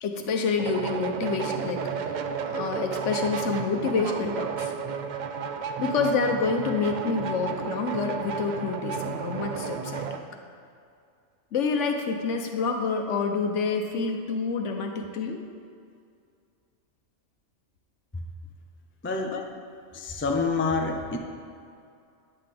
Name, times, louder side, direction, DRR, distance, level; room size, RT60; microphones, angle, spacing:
voice 1, 0.0-1.8 2.4-4.7 5.8-10.1 11.5-15.4 19.3-19.4, left 4 dB, 70° left, 4 dB, 1.1 m, -28 dB
sound 1, 0.6-10.2, right 6 dB, 75° right, 0.4 m, -32 dB
voice 2, 19.0-19.3 19.9-21.2, left 4 dB, 20° left, 2 dB, 0.3 m, -27 dB
9.8 x 7.6 x 3.4 m, 2.4 s
omnidirectional pair, 1.3 m